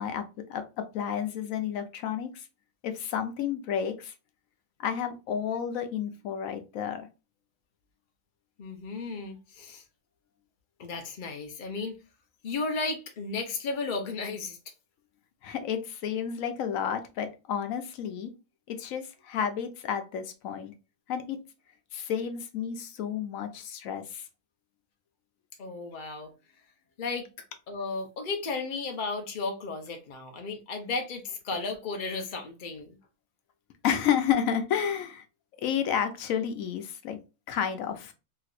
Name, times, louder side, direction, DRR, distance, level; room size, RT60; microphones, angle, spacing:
voice 1, 0.0-2.4 2.8-4.1 4.8-7.1 15.4-18.3 18.7-20.7 21.1-21.4 21.9-24.2 33.8-35.2 35.6-37.2 37.5-38.1, left 8 dB, 85° left, 1.1 m, -31 dB
voice 2, 8.6-9.8 10.8-11.9 12.4-14.6 25.6-26.3 27.0-27.3 27.7-33.0, left 3 dB, 45° left, 0.8 m, -34 dB
3.3 x 3.0 x 2.4 m
omnidirectional pair, 1.4 m